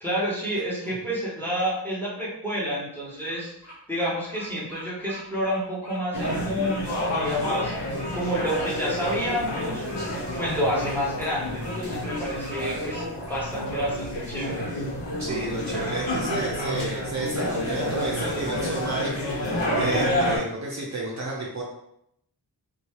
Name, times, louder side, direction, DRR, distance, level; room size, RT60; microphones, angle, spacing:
voice 1, 0.0-3.5 3.9-7.7 8.1-9.8 10.4-13.0 13.3-14.7, equal, 5° left, -6 dB, 1.2 m, -29 dB
Bird vocalization bird call bird song, 3.1-13.9, left 1 dB, 40° left, 1.0 m, -41 dB
sound 1, 6.1-20.4, left 1 dB, 85° left, 0.8 m, -29 dB
voice 2, 15.2-21.6, right 2 dB, 45° right, -4 dB, 0.6 m, -31 dB
2.7 x 2.2 x 3.1 m, 0.77 s
wide cardioid pair, 50°, 41 cm